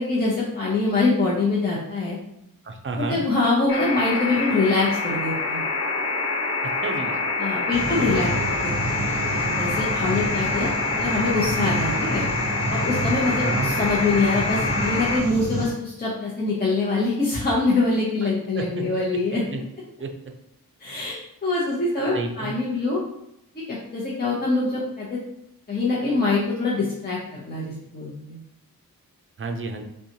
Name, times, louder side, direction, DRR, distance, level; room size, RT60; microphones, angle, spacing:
voice 1, 0.0-2.2 3.0-5.6 7.4-8.9 9.6-12.3 12.7-19.4 20.8-21.1 21.4-23.0 23.5-25.2 25.7-27.2 27.5-28.4, left 3 dB, 25° left, -7 dB, 0.8 m, -24 dB
voice 2, 2.6-3.2 6.8-7.2 7.9-8.5 13.3-13.8 18.2-18.3 18.6-18.8 19.5-19.6 20.0-20.1 22.1-22.6 29.4-29.8, right 3 dB, 35° right, 4 dB, 0.5 m, -31 dB
sound 1, 3.7-15.2, left 3 dB, 80° left, 1.1 m, -26 dB
sound 2, 7.7-15.7, right 1 dB, 50° left, 1.2 m, -29 dB
5.4 x 2.3 x 2.9 m, 0.78 s
wide cardioid pair, 120°, 36 cm